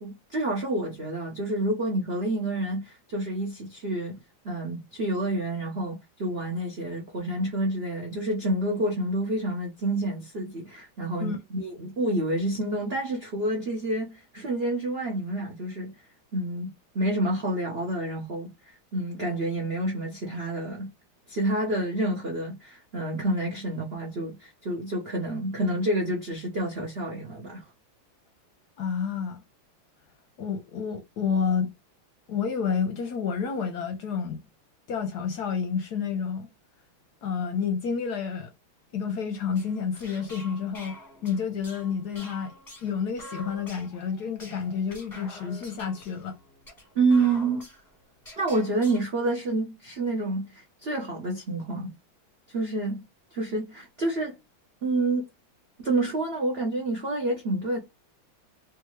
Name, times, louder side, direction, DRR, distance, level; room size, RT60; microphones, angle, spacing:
voice 1, 0.0-4.2 4.4-15.9 16.3-20.9 21.3-27.6 46.9-47.6 48.4-51.9 52.5-53.0 53.3-54.3 54.8-55.3 55.8-57.8, right 2 dB, 60° right, 0.6 m, -28 dB
voice 2, 28.8-29.4 30.4-31.7 32.3-34.4 34.9-36.5 37.2-38.5 38.9-41.0 41.2-42.5 42.8-46.4, left 6 dB, 65° left, 1.1 m, -29 dB
sound 1, 39.5-49.0, left 1 dB, 15° left, 0.9 m, -47 dB
3.6 x 2.7 x 3.1 m
omnidirectional pair, 2.3 m